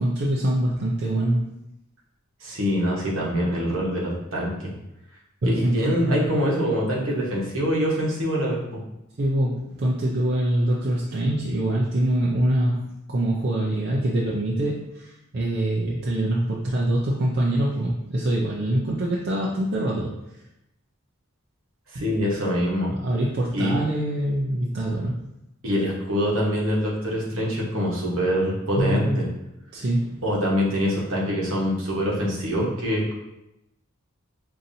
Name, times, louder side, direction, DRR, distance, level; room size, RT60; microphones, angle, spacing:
voice 1, 0.0-1.4 5.4-6.4 9.2-12.8 13.1-20.1 21.9-22.1 22.9-25.2 28.8-29.3 29.7-30.2, right 1 dB, 50° right, -5 dB, 0.5 m, -24 dB
voice 2, 2.4-4.7 5.5-8.6 21.9-22.9 23.5-23.7 25.6-29.0 30.2-33.1, equal, 70° right, -4 dB, 1.2 m, -24 dB
5.6 x 2.6 x 2.7 m, 0.89 s
head